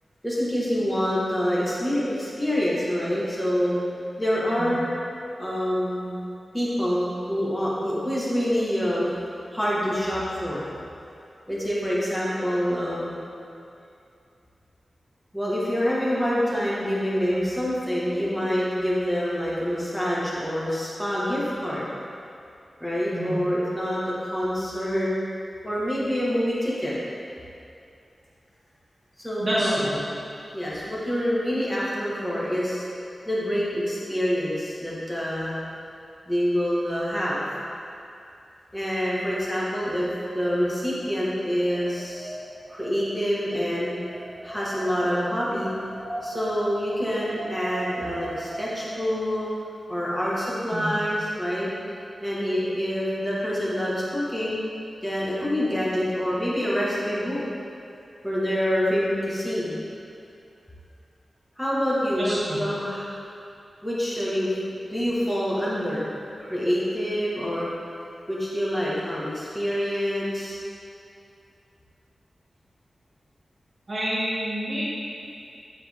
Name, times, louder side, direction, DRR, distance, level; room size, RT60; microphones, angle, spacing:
voice 1, 0.2-3.8 4.2-4.9 5.4-6.2 6.5-9.1 9.5-10.7 11.5-13.2 15.3-21.8 22.8-25.1 25.6-26.9 29.2-29.8 30.5-32.9 33.2-35.5 36.3-37.5 38.7-40.1 40.3-42.4 42.7-43.9 44.4-45.7 46.2-49.5 49.9-51.7 52.2-54.6 55.0-57.4 58.2-59.8 61.6-63.1 63.8-66.1 66.4-67.7 68.3-70.6, equal, 5° left, -7 dB, 1.5 m, -26 dB
voice 2, 23.1-23.4 29.4-29.9 50.7-50.9 62.2-62.6 73.9-74.8, equal, 40° right, -11 dB, 1.5 m, -28 dB
Wind, 41.3-49.1, right 2 dB, 20° right, 0.9 m, -39 dB
9.7 x 4.2 x 3.5 m, 2.6 s
wide cardioid pair, 95°, 0 cm